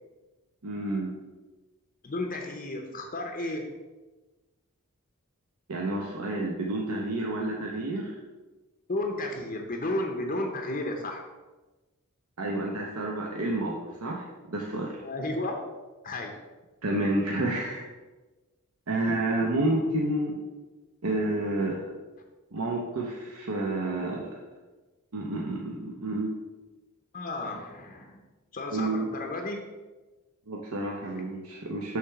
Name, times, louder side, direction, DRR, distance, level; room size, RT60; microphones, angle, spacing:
voice 1, 0.6-1.2 5.7-8.2 12.4-15.0 16.8-17.8 18.9-20.4 21.0-21.8 22.5-24.3 25.1-26.4 28.7-29.1 30.5-32.0, right 2 dB, 75° right, -1 dB, 0.8 m, -30 dB
voice 2, 2.0-3.7 8.9-11.2 15.0-15.6 16.0-16.4 22.6-22.7 27.1-28.2 28.5-29.6 31.0-31.2, left 2 dB, 40° left, 2 dB, 0.6 m, -33 dB
6.7 x 3.3 x 5.7 m, 1.2 s
head